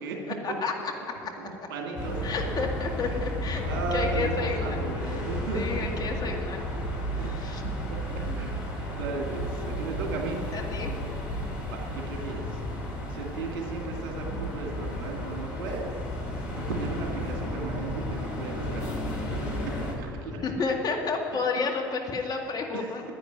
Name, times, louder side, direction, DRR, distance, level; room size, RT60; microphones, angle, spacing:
voice 1, 0.3-1.3 2.2-3.6 3.9-5.3 5.5-6.6 7.1-7.6 8.2-8.5 10.5-11.0 20.4-23.0, left 4 dB, 35° left, 1 dB, 2.1 m, -31 dB
voice 2, 1.4-2.2 3.6-5.9 7.2-7.5 7.8-8.6 8.9-10.4 11.7-12.5 13.1-15.9 16.6-18.9 19.5-19.6 20.0-20.4 22.7-22.9, right 4 dB, 70° right, 1 dB, 2.2 m, -35 dB
sound 1, 2.0-19.9, equal, 70° left, 2.8 m, -33 dB
10.5 x 9.4 x 9.7 m, 2.8 s
figure-of-eight pair, 60°, 11 cm